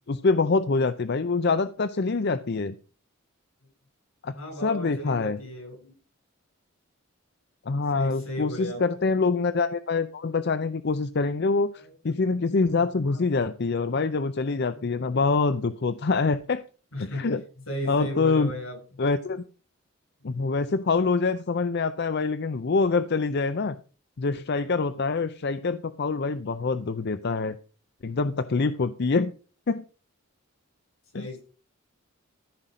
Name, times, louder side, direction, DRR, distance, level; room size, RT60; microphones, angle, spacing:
voice 1, 0.1-2.7 4.2-4.3 4.6-5.4 7.7-16.6 17.0-17.4 17.9-18.5 19.0-19.4 20.2-23.8 24.2-27.6 28.0-29.3 29.7-29.8 31.1-31.3, left 4 dB, 50° left, 12 dB, 0.5 m, -25 dB
voice 2, 4.3-5.9 7.9-8.8 13.0-13.2 14.4-15.1 16.9-17.3 17.7-18.8 31.1-31.4, left 1 dB, 80° left, 3 dB, 6.4 m, -36 dB
14.0 x 5.8 x 5.0 m, 0.37 s
head